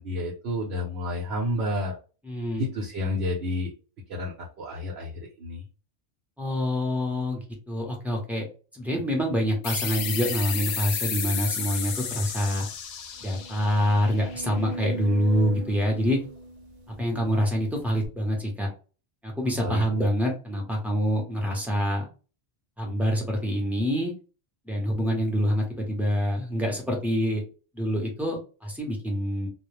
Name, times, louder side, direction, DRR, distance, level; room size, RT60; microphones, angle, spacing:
voice 1, 0.0-2.0 2.5-3.7 4.1-5.6 19.6-19.8, left 1 dB, 70° right, -2 dB, 0.9 m, -30 dB
voice 2, 2.2-2.7 6.4-8.5 8.7-12.7 13.2-16.2 16.9-18.7 19.2-22.0 22.8-24.1 24.7-27.4 27.7-29.5, equal, ahead, -1 dB, 0.5 m, -26 dB
sound 1, 9.6-14.9, left 7 dB, 70° left, 0.8 m, -33 dB
sound 2, 12.0-12.1 12.5-12.6 13.1-17.4 18.0-18.1, right 2 dB, 50° right, 0.5 m, -38 dB
2.2 x 2.0 x 3.0 m, 0.35 s
omnidirectional pair, 1.2 m